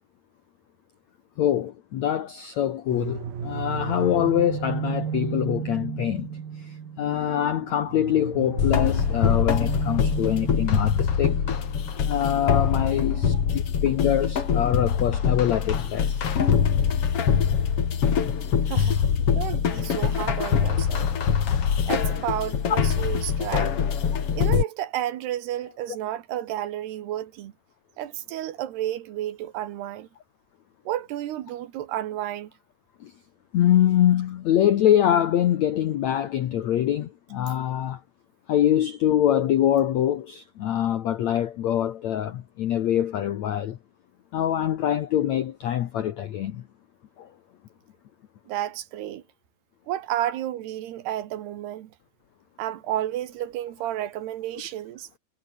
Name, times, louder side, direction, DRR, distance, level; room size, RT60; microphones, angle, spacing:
voice 1, 1.4-11.4 12.1-16.2 22.7-22.8 33.0-33.1 33.5-38.0 38.5-43.8 44.3-46.6 47.2-47.3 50.2-50.3, left 11 dB, 75° left, 1.6 m, -24 dB
sound 1, 2.9-15.6, right 8 dB, 60° right, 4.8 m, -35 dB
sound 2, 8.6-24.6, left 7 dB, 45° left, 2.4 m, -23 dB
voice 2, 18.7-21.1 21.9-23.7 24.3-27.5 28.0-30.1 30.9-32.5 48.5-49.2 49.9-51.9 52.6-55.1, right 12 dB, 80° right, 3.5 m, -31 dB
omnidirectional pair, 4.8 m